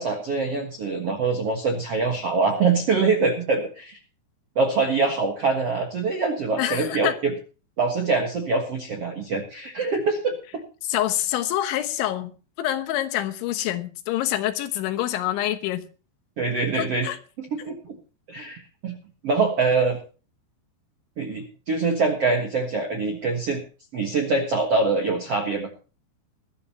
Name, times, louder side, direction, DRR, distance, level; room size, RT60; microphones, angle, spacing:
voice 1, 0.0-4.0 4.5-7.3 7.8-10.6 16.4-17.1 17.4-17.9 18.3-19.0 19.2-20.0 21.2-23.6 23.9-25.7, right 4 dB, 70° right, 1.4 m, -24 dB
voice 2, 6.6-7.2 10.8-12.3 12.6-15.8 16.7-17.2, left 13 dB, 80° left, 3.5 m, -26 dB
20.5 x 13.0 x 2.9 m
omnidirectional pair, 5.4 m